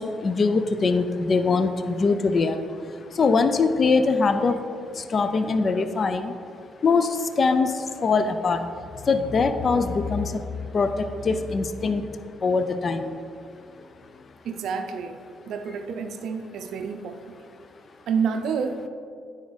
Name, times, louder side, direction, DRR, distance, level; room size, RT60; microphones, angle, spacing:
voice 1, 0.2-2.6 3.2-4.6 5.1-6.3 6.8-7.1 7.4-7.7 8.0-8.6 9.1-10.3 10.7-10.9 11.2-12.0 12.4-13.1, left 4 dB, 45° left, 9 dB, 0.4 m, -22 dB
voice 2, 14.4-17.4 18.1-18.9, right 6 dB, 75° right, 6 dB, 0.4 m, -29 dB
9.4 x 3.9 x 4.0 m, 2.3 s
cardioid pair, 90°, 0 cm